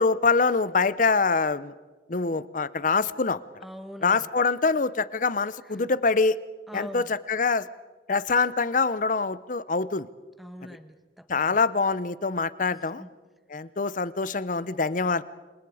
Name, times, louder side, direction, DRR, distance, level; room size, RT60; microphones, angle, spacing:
voice 1, 0.0-1.7 2.1-3.4 4.0-6.4 6.7-7.7 8.1-10.1 11.3-13.0 13.5-15.2, left 4 dB, 45° left, 17 dB, 0.7 m, -24 dB
voice 2, 3.6-4.3 5.7-5.8 6.7-7.1 10.4-11.6 12.7-13.1, equal, ahead, 8 dB, 1.4 m, -43 dB
29.0 x 25.5 x 4.9 m, 1.3 s
head